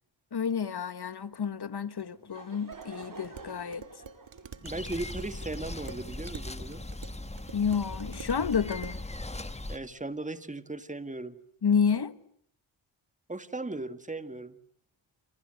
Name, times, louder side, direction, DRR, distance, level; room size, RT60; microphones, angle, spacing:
voice 1, 0.3-3.8 7.5-9.0 11.6-12.1, left 6 dB, 55° left, 1.6 m, -29 dB
Laughter / Crowd, 1.9-6.6, right 4 dB, 40° right, 5.5 m, -49 dB
Dishes pots and pans, 2.7-9.1, right 5 dB, 65° right, 2.3 m, -48 dB
sound 1, 4.6-9.8, left 2 dB, 15° left, 1.6 m, -39 dB
voice 2, 4.6-6.8 9.7-11.4 13.3-14.6, right 2 dB, 15° right, 1.9 m, -37 dB
28.5 x 28.0 x 6.6 m
wide cardioid pair, 95°, 48 cm